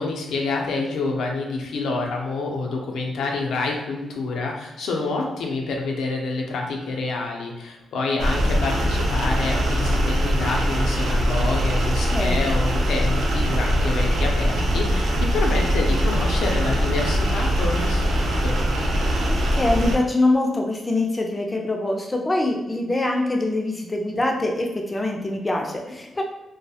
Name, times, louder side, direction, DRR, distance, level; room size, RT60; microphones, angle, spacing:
voice 1, 0.0-18.6, left 3 dB, 85° left, 0 dB, 0.5 m, -27 dB
sound 1, 8.2-19.9, equal, 85° right, 0.4 m, -22 dB
voice 2, 11.8-12.5 19.3-26.2, left 2 dB, 15° left, 1 dB, 0.3 m, -24 dB
2.2 x 2.0 x 2.7 m, 0.97 s
wide cardioid pair, 135°, 0 cm